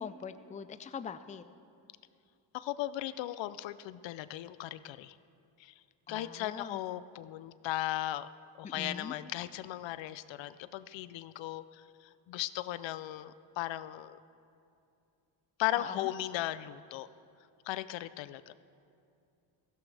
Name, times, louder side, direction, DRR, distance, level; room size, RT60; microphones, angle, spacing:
voice 1, 0.0-1.4 6.1-6.8 8.6-9.1 15.8-16.1, left 6 dB, 15° left, 11 dB, 0.4 m, -42 dB
voice 2, 2.5-5.1 5.6-5.7 6.1-8.3 8.6-11.8 12.3-14.2 15.6-17.1 17.7-18.5, left 14 dB, 70° left, 15 dB, 0.6 m, -37 dB
16.0 x 15.0 x 3.4 m, 2.5 s
cardioid pair, 90°, 47 cm